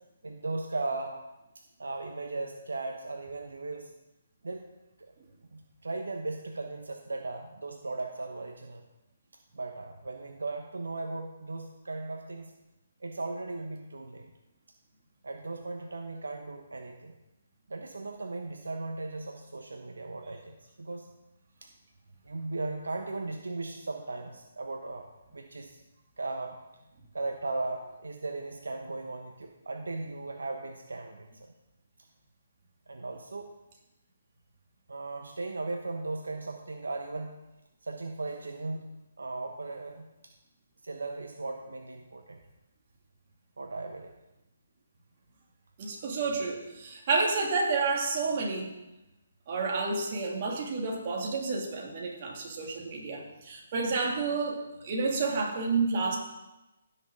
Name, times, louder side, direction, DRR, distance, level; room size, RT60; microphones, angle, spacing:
voice 1, 0.2-1.2 1.5-3.9 4.4-4.7 5.0-5.1 5.5-8.8 9.5-12.5 13.0-14.3 15.2-17.1 17.7-21.1 21.6-21.7 22.3-25.0 25.3-25.8 26.2-26.6 27.1-31.5 32.9-33.5 34.9-37.4 37.8-38.9 39.2-40.3 40.8-42.4 43.6-44.2, right 3 dB, 85° right, 4 dB, 1.0 m, -37 dB
voice 2, 45.8-48.7 49.5-56.2, right 4 dB, 45° right, -1 dB, 2.5 m, -30 dB
15.5 x 6.5 x 3.8 m, 0.98 s
hypercardioid pair, 150°, 0 cm